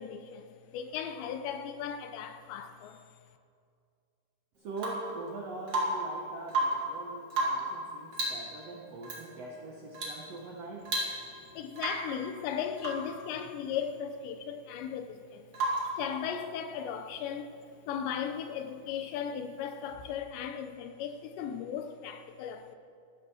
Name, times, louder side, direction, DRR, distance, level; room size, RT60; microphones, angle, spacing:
voice 1, 0.0-3.0 11.5-15.5 16.0-17.6 17.9-22.8, left 8 dB, 85° left, 3.1 m, -37 dB
voice 2, 4.6-10.9, right 3 dB, 75° right, 1.5 m, -42 dB
Rain / Water tap faucet / Drip, 4.8-5.2 5.7-6.1 6.4-6.9 7.3-7.7 8.1-8.5 9.0-9.2 9.9-10.2 10.5-10.6 10.9-11.4 11.8-12.1 12.8-13.1 15.5-16.0 17.9-18.0, right 1 dB, 40° right, 3.3 m, -32 dB
14.5 x 11.5 x 6.4 m
omnidirectional pair, 5.0 m